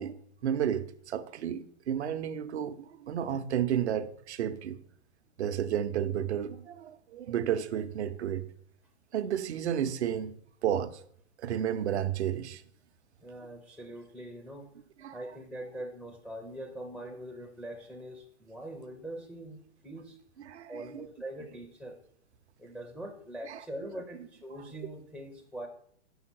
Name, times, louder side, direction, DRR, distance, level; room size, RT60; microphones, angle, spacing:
voice 1, 0.0-4.8 5.4-8.5 9.1-10.3 10.6-10.9 11.4-12.6 15.0-15.4 20.4-21.1 23.4-23.9, right 9 dB, 75° right, 0.6 m, -32 dB
voice 2, 13.2-14.7 15.1-20.2 20.7-22.0 22.6-25.7, right 1 dB, ahead, 0.4 m, -43 dB
5.6 x 3.8 x 5.9 m
hypercardioid pair, 120°, 33 cm